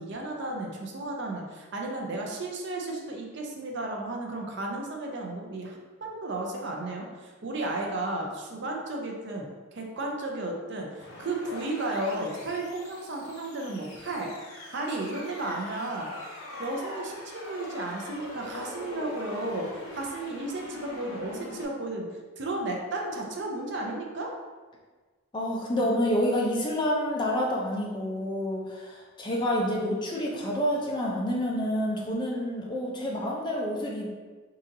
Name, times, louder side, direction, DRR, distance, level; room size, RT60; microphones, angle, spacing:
voice 1, 0.0-9.5 9.7-14.3 14.7-16.1 16.6-22.1 22.4-24.3, right 2 dB, 55° right, 0 dB, 0.5 m, -33 dB
sound 1, 11.0-21.6, left 1 dB, 75° left, 0.7 m, -43 dB
voice 2, 25.3-34.1, equal, 20° left, -3 dB, 0.5 m, -28 dB
3.7 x 2.7 x 2.6 m, 1.4 s
head